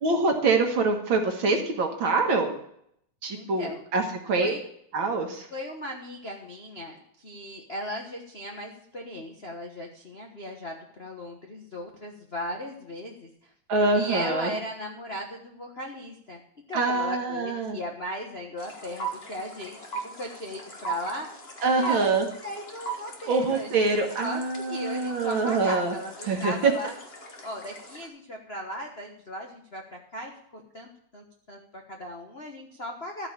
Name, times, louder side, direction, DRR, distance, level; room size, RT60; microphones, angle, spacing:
voice 1, 0.0-2.6 3.2-4.6 4.9-5.5 13.7-14.5 16.7-17.8 21.6-22.3 23.3-25.9 26.3-26.7, right 3 dB, 50° right, 3 dB, 1.8 m, -25 dB
voice 2, 3.3-3.8 4.4-4.6 5.5-13.5 13.9-16.4 16.7-19.8 20.0-21.3 21.7-22.1 22.4-23.9 24.2-24.4 24.7-26.9 27.4-33.3, equal, 60° left, 1 dB, 0.6 m, -37 dB
sound 1, 18.6-28.1, right 4 dB, 30° left, 1.2 m, -40 dB
13.5 x 5.0 x 8.6 m, 0.69 s
omnidirectional pair, 3.4 m